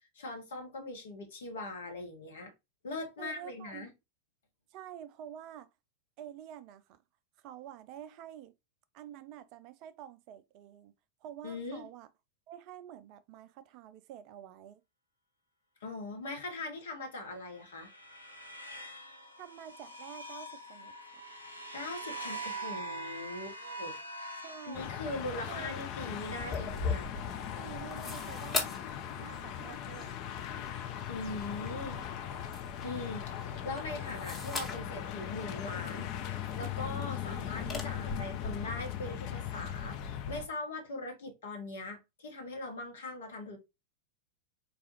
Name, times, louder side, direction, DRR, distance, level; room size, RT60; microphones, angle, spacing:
voice 1, 0.1-2.5 2.8-3.9 11.4-11.8 15.8-17.9 21.7-23.9 24.6-27.1 31.1-32.0 32.8-43.6, left 2 dB, 65° left, 1.1 m, -41 dB
voice 2, 3.2-3.9 4.7-5.7 6.2-7.0 7.4-8.5 8.9-10.9 11.2-12.1 12.5-14.8 19.4-21.2 24.4-24.9 25.5-25.8 27.6-28.7 29.2-30.4, right 10 dB, 40° right, 0.3 m, -48 dB
sound 1, 17.3-25.6, right 2 dB, 90° left, 0.6 m, -44 dB
sound 2, 24.7-40.5, left 9 dB, 40° left, 0.5 m, -39 dB
sound 3, 26.4-37.8, left 3 dB, 15° left, 1.1 m, -41 dB
4.0 x 2.4 x 2.8 m
figure-of-eight pair, 90°, 0 cm